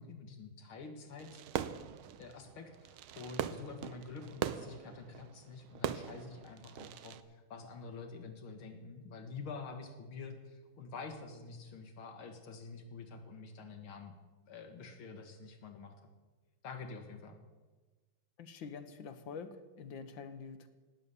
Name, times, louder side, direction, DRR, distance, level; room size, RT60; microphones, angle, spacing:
voice 1, 0.0-1.4 2.2-14.1 14.5-16.0 16.6-17.4, left 4 dB, 85° left, 6 dB, 2.5 m, -47 dB
Fireworks, 1.2-7.2, right 10 dB, 90° right, 1.6 m, -41 dB
voice 2, 18.4-20.7, left 5 dB, 70° left, 10 dB, 1.8 m, -46 dB
18.0 x 9.4 x 7.0 m, 1.3 s
omnidirectional pair, 2.3 m